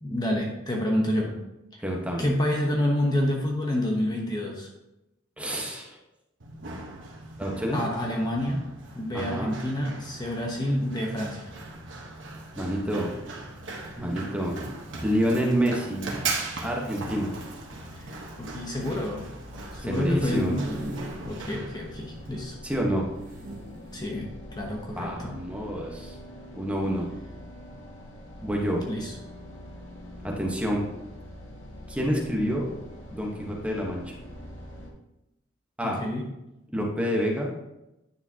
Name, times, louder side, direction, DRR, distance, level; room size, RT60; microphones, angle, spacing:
voice 1, 0.0-1.3 1.7-1.8 2.2-4.7 7.7-8.6 9.0-11.5 18.0-19.2 19.7-22.5 23.9-24.3 24.6-25.4 28.9-29.1 36.0-36.3, left 1 dB, 20° left, -1 dB, 1.0 m, -28 dB
voice 2, 1.8-2.2 5.4-6.0 7.4-7.8 9.1-9.5 12.5-13.1 14.0-14.6 15.0-16.1 16.6-17.3 19.8-20.6 22.6-23.0 24.9-26.2 26.5-27.1 28.4-28.8 30.2-30.9 31.9-32.6 33.1-34.1 35.8-36.0 36.7-37.5, equal, 5° right, -1 dB, 1.2 m, -28 dB
Run, 6.4-22.4, right 3 dB, 65° right, 1.3 m, -39 dB
sound 1, 17.1-34.9, left 1 dB, 85° left, 1.4 m, -45 dB
sound 2, 19.9-21.2 21.7-21.8 22.0-22.1 23.2-24.1 24.8-25.0, right 1 dB, 45° right, 1.3 m, -40 dB
9.6 x 6.8 x 2.9 m, 0.92 s
head